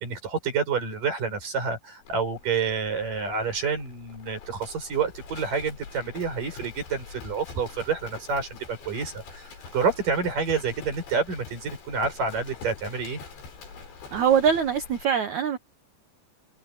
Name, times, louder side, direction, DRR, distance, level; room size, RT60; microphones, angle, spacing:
voice 1, 0.0-13.2, right 5 dB, 45° right, 7.8 m, -28 dB
Livestock farm animals working animals, 2.0-15.1, left 5 dB, 70° left, 8.0 m, -45 dB
voice 2, 14.1-15.6, right 7 dB, 85° right, 1.6 m, -22 dB
omnidirectional pair, 5.2 m